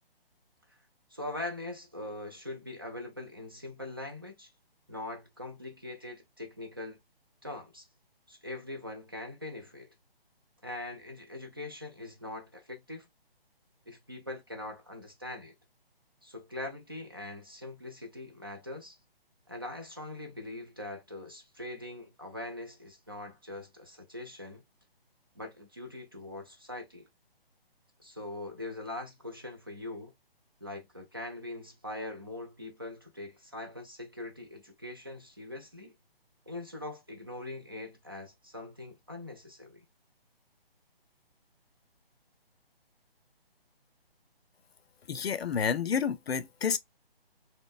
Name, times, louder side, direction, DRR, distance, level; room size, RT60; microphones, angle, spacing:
voice 1, 1.1-4.5 4.9-7.0 7.4-7.9 8.3-9.9 10.6-13.1 13.9-15.5 16.2-19.0 19.5-24.6 25.4-27.1 28.0-30.1 30.6-35.9 36.5-39.8, left 2 dB, 25° right, 0.3 m, -42 dB
voice 2, 45.1-46.8, left 6 dB, 80° left, 0.5 m, -29 dB
3.7 x 2.0 x 2.3 m
figure-of-eight pair, 145°, 30 cm